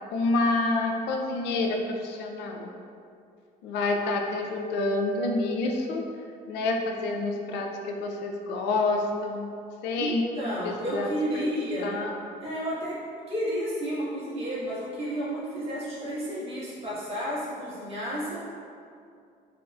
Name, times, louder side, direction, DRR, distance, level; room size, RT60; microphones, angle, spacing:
voice 1, 0.1-2.7 3.6-6.0 6.5-9.5 9.8-10.2 10.6-11.1 11.3-11.5 11.8-12.2, left 2 dB, 90° left, 2 dB, 0.5 m, -28 dB
voice 2, 10.0-12.0 12.4-13.0 13.3-18.4, equal, 35° right, -8 dB, 1.5 m, -31 dB
5.2 x 2.8 x 2.3 m, 2.5 s
cardioid pair, 110°, 17 cm